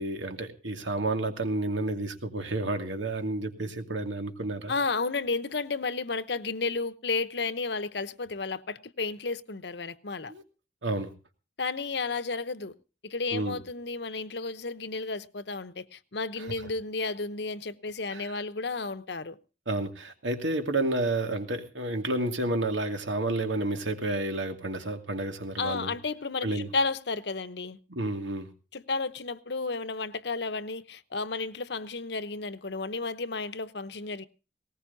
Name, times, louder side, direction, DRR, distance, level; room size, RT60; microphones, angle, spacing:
voice 1, 0.0-4.7 10.3-10.4 10.8-11.1 13.3-13.6 16.4-16.5 18.1-18.3 19.7-25.9 26.4-26.7 27.9-28.5, right 2 dB, 85° right, 2.4 m, -30 dB
voice 2, 4.7-10.3 11.6-12.7 13.0-19.4 25.6-27.8 28.7-34.3, left 3 dB, 65° left, 0.9 m, -32 dB
19.5 x 18.5 x 2.7 m
head